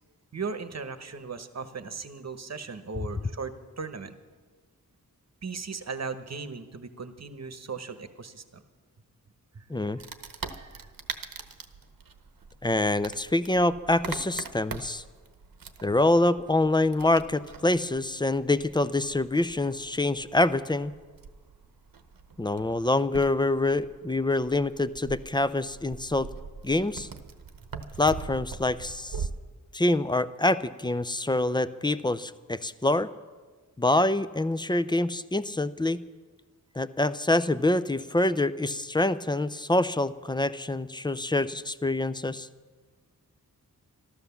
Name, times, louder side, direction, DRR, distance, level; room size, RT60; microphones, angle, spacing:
voice 1, 0.3-4.2 5.4-8.6 9.5-10.0 10.4-10.9, right 5 dB, 50° right, 9 dB, 1.0 m, -38 dB
Wood, 10.0-29.3, right 5 dB, 75° right, 0.9 m, -42 dB
voice 2, 12.6-15.0 15.8-20.9 22.4-26.3 26.6-27.1 28.0-29.3 29.7-33.1 33.8-36.0 36.8-42.5, left 2 dB, 15° left, 14 dB, 0.4 m, -26 dB
13.0 x 13.0 x 7.0 m, 1.4 s
wide cardioid pair, 90°, 34 cm